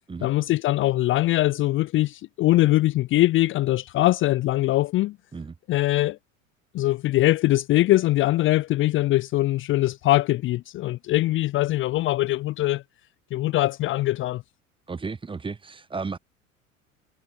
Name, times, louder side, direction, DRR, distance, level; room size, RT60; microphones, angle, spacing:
voice 1, 0.2-5.2 5.7-6.2 6.7-12.8 13.3-14.4, left 16 dB, 30° left, 0.7 m, -22 dB
voice 2, 14.9-16.2, right 4 dB, 15° right, 1.3 m, -33 dB
figure-of-eight pair, 75°, 40 cm